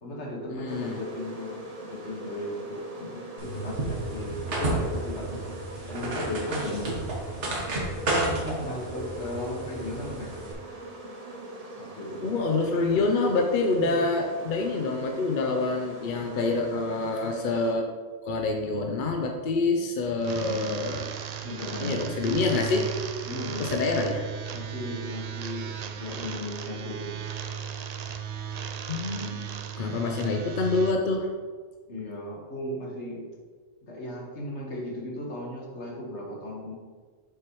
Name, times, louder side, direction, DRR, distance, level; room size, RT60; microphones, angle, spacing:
voice 1, 0.0-5.4 5.9-7.0 8.3-10.4 11.8-12.3 13.8-14.0 21.4-22.0 23.2-23.7 24.5-25.7 26.0-27.2 30.0-30.4 31.9-33.3 33.8-36.7, left 1 dB, 80° left, -2 dB, 1.8 m, -36 dB
voice 2, 0.6-1.0 12.2-17.9 18.2-21.1 21.8-22.9 23.6-24.3 28.9-29.4 29.8-31.3, left 3 dB, 50° left, 2 dB, 0.8 m, -26 dB
sound 1, 0.7-17.7, right 1 dB, 35° right, 0.8 m, -42 dB
sound 2, 3.4-10.5, right 2 dB, 85° right, 1.6 m, -32 dB
sound 3, 20.2-30.9, right 8 dB, 60° right, 0.4 m, -36 dB
7.2 x 6.5 x 3.1 m, 1.5 s
omnidirectional pair, 1.2 m